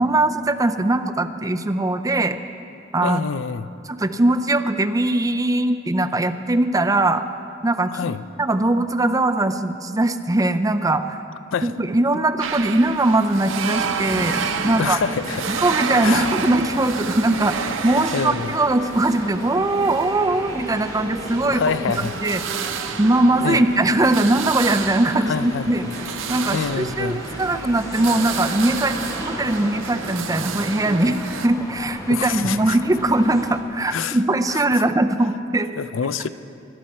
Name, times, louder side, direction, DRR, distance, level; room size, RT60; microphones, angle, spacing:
voice 1, 0.0-2.4 2.9-3.2 3.9-7.2 7.6-8.1 8.4-11.2 11.6-15.0 15.5-21.6 22.2-22.4 23.0-25.8 26.3-31.2 31.4-35.7, right 2 dB, 20° right, 7 dB, 0.5 m, -21 dB
voice 2, 3.0-3.7 7.9-8.2 11.5-11.7 14.6-15.6 16.0-16.3 18.1-18.6 21.5-22.2 23.4-23.6 25.2-25.7 26.5-27.2 32.1-32.8 33.9-34.2 34.5-34.8 35.8-36.3, left 6 dB, 80° left, 14 dB, 0.4 m, -26 dB
Metal Workshop Sounds, 12.4-31.5, right 6 dB, 90° right, 0.7 m, -30 dB
sound 1, 13.7-33.6, left 1 dB, 20° left, 1.0 m, -36 dB
20.0 x 11.5 x 4.3 m, 2.6 s
head